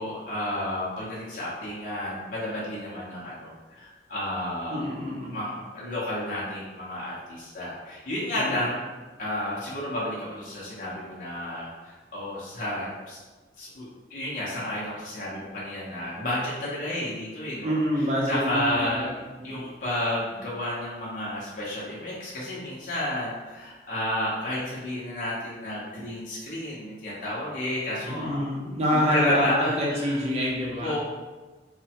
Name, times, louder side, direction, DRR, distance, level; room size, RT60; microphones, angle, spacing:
voice 1, 0.0-4.9 5.3-8.8 9.2-13.2 13.6-17.8 18.2-19.1 19.4-28.4 29.1-30.2 30.8-31.0, left 1 dB, 45° left, -7 dB, 0.6 m, -31 dB
voice 2, 4.7-5.4 8.3-8.7 17.6-19.7 28.0-31.0, equal, 35° right, -4 dB, 0.6 m, -27 dB
3.1 x 2.1 x 2.8 m, 1.3 s
head